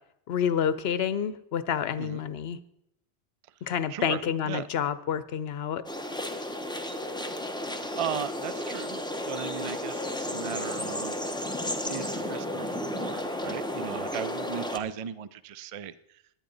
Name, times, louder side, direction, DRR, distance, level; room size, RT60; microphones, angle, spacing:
voice 1, 0.3-2.6 3.6-5.8, left 8 dB, 75° left, 14 dB, 0.9 m, -28 dB
voice 2, 3.9-4.7 7.5-11.2 11.9-16.2, right 8 dB, 50° right, 16 dB, 0.4 m, -37 dB
sound 1, 5.9-14.8, left 1 dB, 5° left, 0.8 m, -33 dB
17.5 x 10.5 x 3.9 m, 0.79 s
omnidirectional pair, 1.1 m